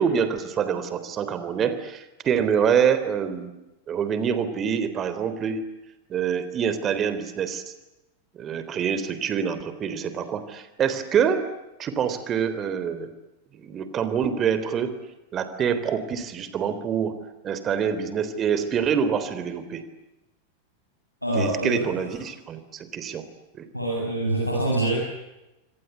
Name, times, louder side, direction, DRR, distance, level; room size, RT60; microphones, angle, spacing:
voice 1, 0.0-3.5 3.9-5.6 6.1-7.6 8.4-11.5 11.8-13.1 13.5-14.9 15.3-17.1 17.4-19.8 21.4-23.3 23.6-23.7, right 7 dB, 25° right, 12 dB, 3.6 m, -26 dB
voice 2, 21.2-21.9 23.7-25.1, right 1 dB, 90° left, -3 dB, 8.0 m, -25 dB
26.5 x 26.5 x 8.3 m, 0.98 s
figure-of-eight pair, 90°, 0 cm